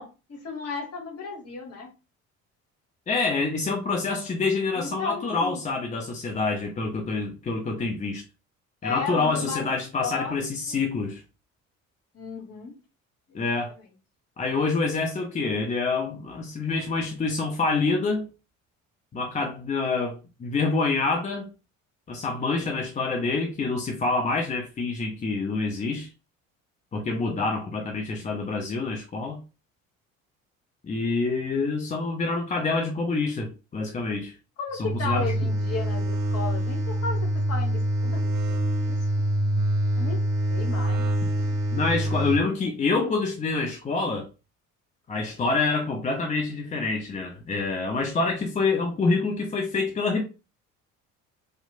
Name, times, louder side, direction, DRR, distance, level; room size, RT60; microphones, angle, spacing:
voice 1, 0.0-1.9 4.7-5.6 8.8-9.6 9.9-10.4 10.7-10.8 12.1-12.7 13.3-13.4 34.6-38.6 38.8-39.0 40.0-40.2 40.5-41.2 42.6-42.7, left 4 dB, 40° left, 1.0 m, -34 dB
voice 2, 3.1-8.2 8.8-11.2 13.3-13.7 14.4-18.3 19.1-21.5 22.1-26.1 26.9-29.4 30.9-34.3 34.8-35.3 41.7-44.3 45.1-50.2, left 3 dB, 20° left, 0.4 m, -27 dB
sound 1, 34.8-42.4, right 1 dB, 55° right, 0.7 m, -25 dB
2.8 x 2.0 x 2.6 m
hypercardioid pair, 60°, 40 cm